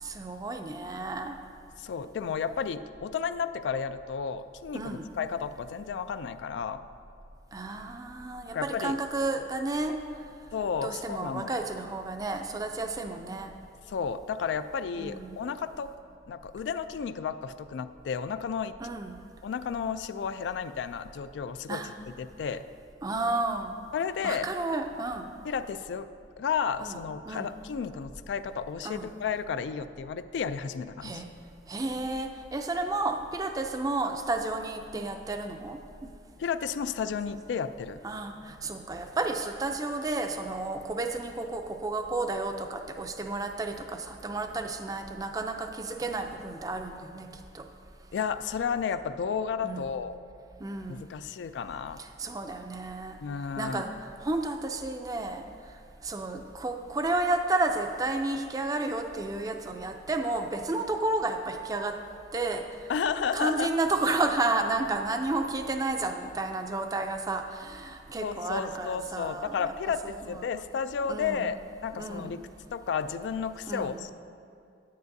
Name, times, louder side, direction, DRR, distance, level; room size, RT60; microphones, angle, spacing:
voice 1, 0.0-1.4 4.7-5.1 7.5-9.9 10.8-13.5 15.0-15.4 18.8-19.2 21.7-21.9 23.0-23.7 24.2-25.3 26.8-27.0 27.3-27.5 28.8-29.1 31.0-31.3 31.7-36.1 38.0-47.3 47.5-47.7 49.6-49.9 50.6-51.1 52.0-53.2 53.6-53.9 54.2-55.4 56.0-62.0 62.3-62.6 63.3-69.7 70.0-70.5 71.1-71.5 71.9-72.4 73.7-74.0, right 2 dB, 20° right, 5 dB, 0.4 m, -32 dB
voice 2, 1.8-6.8 8.5-8.9 10.5-11.6 13.9-15.9 16.3-18.7 19.4-21.8 22.2-22.6 23.9-24.5 25.4-26.1 26.4-31.2 36.4-38.0 48.1-50.2 50.9-52.0 53.2-53.8 62.9-63.7 68.2-72.4 72.7-74.1, left 6 dB, 85° left, 13 dB, 0.3 m, -32 dB
9.4 x 9.3 x 2.7 m, 2.4 s
head